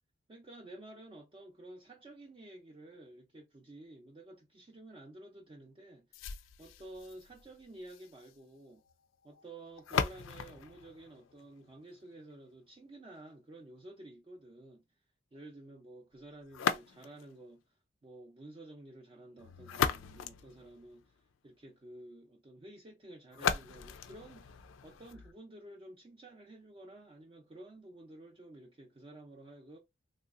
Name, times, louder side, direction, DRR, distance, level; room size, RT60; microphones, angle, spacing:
voice 1, 0.3-6.3 6.6-8.8 9.2-14.8 15.3-17.8 18.0-29.8, right 1 dB, 25° right, 0.4 m, -52 dB
sound 1, 6.1-12.1 16.5-17.4 19.4-21.3 23.3-25.3, left 7 dB, 85° left, 0.4 m, -38 dB
3.2 x 2.8 x 2.4 m
head